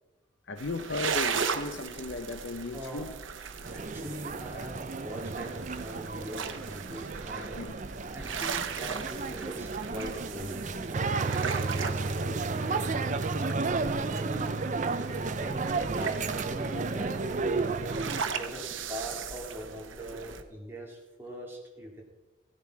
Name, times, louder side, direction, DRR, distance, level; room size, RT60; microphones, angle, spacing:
voice 1, 0.5-3.2 7.6-7.8 12.0-12.1 16.7-17.0 17.3-17.5, left 3 dB, 65° left, 0.7 m, -36 dB
sound 1, 0.6-20.4, right 6 dB, 85° right, 1.0 m, -38 dB
voice 2, 2.7-3.0 3.7-7.6 8.1-11.1 11.7-12.9 13.3-17.7 18.3-18.6 18.9-22.0, right 1 dB, 10° right, 2.4 m, -42 dB
sound 2, 3.6-18.2, right 3 dB, 40° right, 0.6 m, -32 dB
15.0 x 10.5 x 4.7 m
head